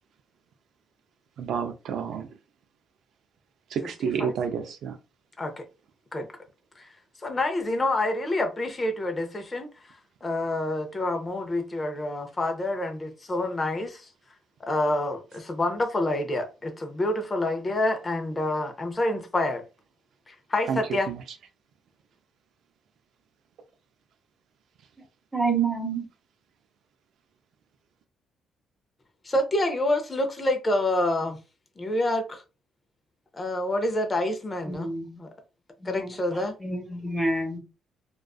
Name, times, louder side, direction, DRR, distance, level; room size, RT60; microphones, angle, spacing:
voice 1, 1.4-2.3 3.7-5.0 20.7-20.8 21.1-21.2, right 7 dB, 75° right, 0.3 m, -29 dB
voice 2, 4.0-4.3 5.4-5.5 6.1-6.3 6.8-6.9 7.2-14.1 14.6-19.7 20.3-21.1 29.2-31.4 31.8-32.4 33.3-34.9 35.2-35.3 35.8-36.5, left 1 dB, 25° left, 0.5 m, -27 dB
voice 3, 25.3-26.1 34.6-35.2 35.8-37.6, right 3 dB, 10° right, 1.0 m, -29 dB
2.4 x 2.2 x 2.3 m
cardioid pair, 90°, 0 cm